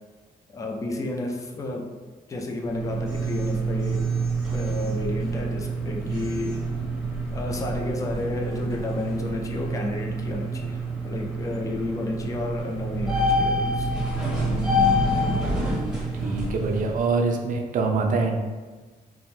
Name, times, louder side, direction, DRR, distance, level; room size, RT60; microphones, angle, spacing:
voice 1, 0.5-1.9 2.3-4.1 4.5-6.7 7.3-13.9, left 2 dB, 20° left, 1 dB, 0.3 m, -31 dB
sound 1, 2.6-17.0, right 1 dB, 5° right, 0.7 m, -27 dB
voice 2, 16.2-18.4, right 4 dB, 60° right, 3 dB, 0.4 m, -24 dB
2.5 x 2.1 x 3.1 m, 1.3 s
cardioid pair, 120°, 16 cm